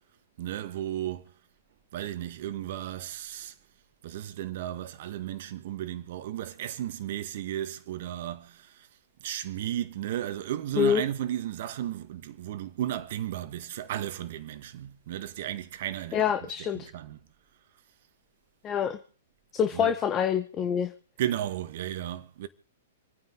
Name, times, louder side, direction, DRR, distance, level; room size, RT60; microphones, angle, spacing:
voice 1, 0.4-1.3 1.9-3.5 4.0-8.9 9.2-16.2 16.6-17.2 19.7-19.9 21.2-22.5, right 12 dB, 55° right, 1.7 m, -34 dB
voice 2, 16.1-16.9 18.6-19.0 19.5-20.9, left 8 dB, 25° left, 1.5 m, -26 dB
28.0 x 9.5 x 3.9 m
hypercardioid pair, 115°, 0 cm